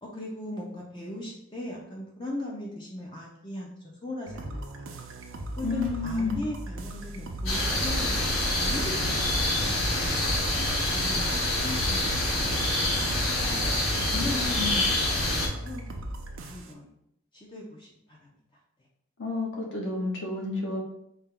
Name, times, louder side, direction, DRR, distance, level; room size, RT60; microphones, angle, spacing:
voice 1, 0.0-3.7 4.0-5.0 5.6-10.3 10.8-15.8 16.4-16.9 17.3-18.3, left 1 dB, 25° left, -3 dB, 0.5 m, -39 dB
sound 1, 4.3-16.7, right 1 dB, 75° right, 0.5 m, -37 dB
voice 2, 5.6-6.3 14.1-14.8 19.2-20.8, left 3 dB, 60° left, -2 dB, 1.0 m, -31 dB
sound 2, 7.5-15.5, left 1 dB, 90° left, 1.4 m, -26 dB
4.3 x 2.2 x 3.7 m, 0.77 s
head